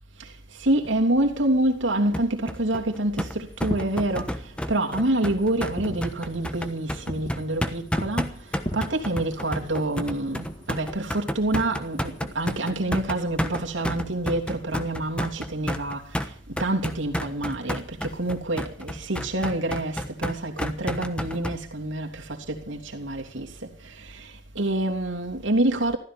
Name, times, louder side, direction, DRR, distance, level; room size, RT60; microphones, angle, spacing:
voice 1, 0.6-4.4 4.7-8.3 8.7-16.0 16.6-23.5 23.8-26.0, right 1 dB, 75° right, 3.2 m, -27 dB
sound 1, 2.1-21.6, equal, 5° left, 1.2 m, -31 dB
Fireworks, 3.5-12.8, equal, 25° left, 2.8 m, -40 dB
15.5 x 13.5 x 6.2 m
head